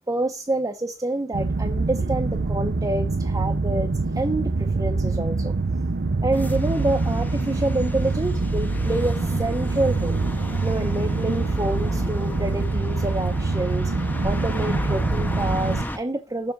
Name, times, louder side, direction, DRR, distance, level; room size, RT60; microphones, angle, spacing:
voice 1, 0.1-5.5 6.2-10.2 10.6-13.9 14.2-16.5, right 1 dB, 15° right, 1.0 m, -27 dB
sound 1, 1.3-15.8, right 3 dB, 50° right, 0.6 m, -25 dB
sound 2, 6.3-16.0, left 1 dB, 10° left, 1.0 m, -33 dB
7.2 x 7.0 x 7.5 m
head